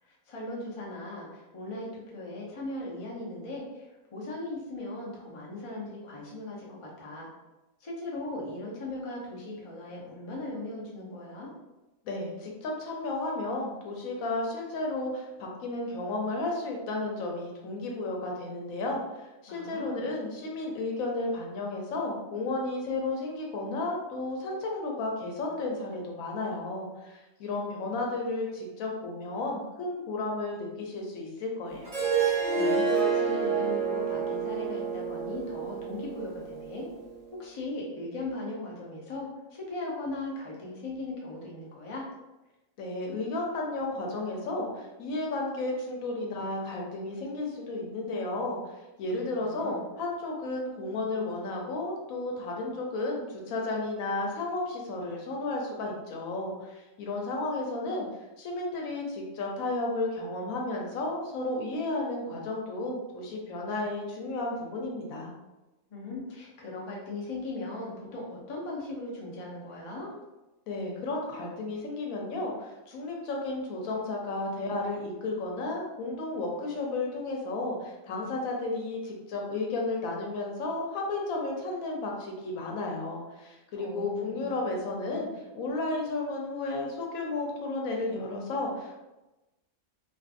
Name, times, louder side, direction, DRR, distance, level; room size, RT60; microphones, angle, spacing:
voice 1, 0.1-7.3 7.8-11.5 19.5-20.1 32.5-36.9 37.4-42.1 49.1-49.8 65.9-70.1 83.7-84.5, left 2 dB, 40° left, -4 dB, 0.4 m, -38 dB
voice 2, 12.0-31.9 42.8-48.6 49.0-58.1 58.4-65.3 70.7-85.3 85.5-89.0, left 2 dB, 85° left, 0 dB, 1.1 m, -33 dB
Harp, 31.9-37.0, right 5 dB, 40° right, 0.6 m, -28 dB
2.5 x 2.4 x 2.4 m, 1.0 s
omnidirectional pair, 1.4 m